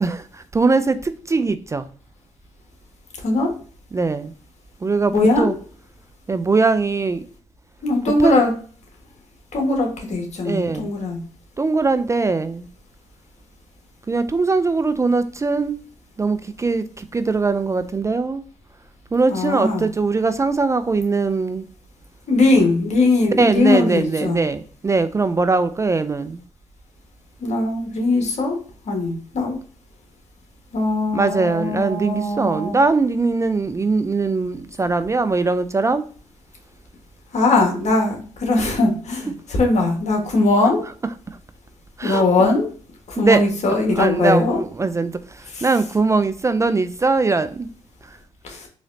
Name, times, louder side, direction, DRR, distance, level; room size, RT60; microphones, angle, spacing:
voice 1, 0.0-1.9 3.9-4.3 4.8-5.5 6.3-7.3 8.2-8.4 10.4-10.9 11.6-12.7 14.1-15.8 16.2-18.4 19.1-21.6 23.4-26.4 31.1-36.0 42.0-42.5 43.2-43.4 43.9-47.7 48.0-48.2, right 3 dB, 25° right, 0.3 m, -21 dB
voice 2, 5.1-5.5 7.8-8.5 9.5-11.2 19.3-19.8 22.3-24.4 27.4-28.6 28.9-29.6 30.7-32.8 37.3-40.9 42.0-42.7 43.1-44.6 45.5-45.6 48.4-48.7, left 2 dB, 60° left, 1.5 m, -20 dB
3.9 x 3.1 x 2.6 m
supercardioid pair, 60°, 13 cm